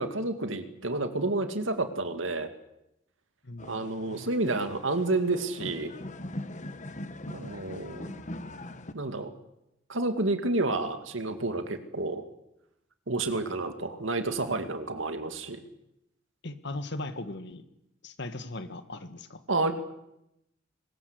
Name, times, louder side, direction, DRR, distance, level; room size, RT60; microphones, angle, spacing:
voice 1, 0.0-2.5 3.7-5.9 7.3-8.1 8.9-9.3 9.9-12.2 13.1-15.6 19.5-19.7, right 2 dB, 75° right, 8 dB, 2.3 m, -30 dB
voice 2, 3.4-3.8 16.4-17.7 18.0-19.4, left 2 dB, 60° left, 11 dB, 1.8 m, -38 dB
sound 1, 3.6-8.9, left 1 dB, 40° left, 1.4 m, -41 dB
23.5 x 20.5 x 8.2 m, 0.84 s
head